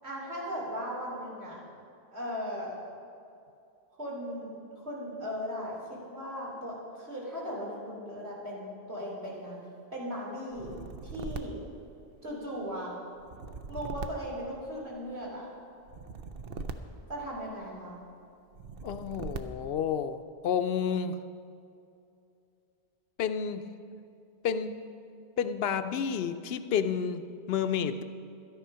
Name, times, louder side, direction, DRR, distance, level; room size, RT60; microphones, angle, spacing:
voice 1, 0.0-1.6 2.1-2.7 4.0-9.6 9.9-10.7 11.0-11.5 12.2-12.9 13.7-15.4 17.1-18.0, equal, 80° right, -5 dB, 3.5 m, -37 dB
sound 1, 10.5-12.5 13.2-15.1 15.8-17.8 18.5-19.9, right 4 dB, 60° right, 0.9 m, -41 dB
voice 2, 18.8-21.2 23.2-23.7 24.4-24.8 25.4-28.0, left 7 dB, 70° left, 10 dB, 0.8 m, -30 dB
12.5 x 10.0 x 5.6 m, 2.6 s
omnidirectional pair, 1.1 m